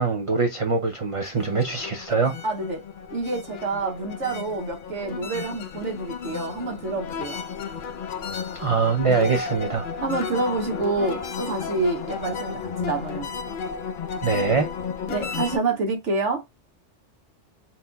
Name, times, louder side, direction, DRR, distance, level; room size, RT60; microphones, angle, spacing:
voice 1, 0.0-2.4 8.5-9.8 14.2-14.7, right 4 dB, 40° right, 0.4 m, -23 dB
sound 1, 1.1-15.6, left 6 dB, 55° left, 0.6 m, -33 dB
voice 2, 2.4-2.8 3.1-7.4 9.1-9.4 10.0-13.3 15.1-16.4, right 3 dB, 75° right, 1.5 m, -27 dB
4.2 x 4.0 x 2.3 m
omnidirectional pair, 1.2 m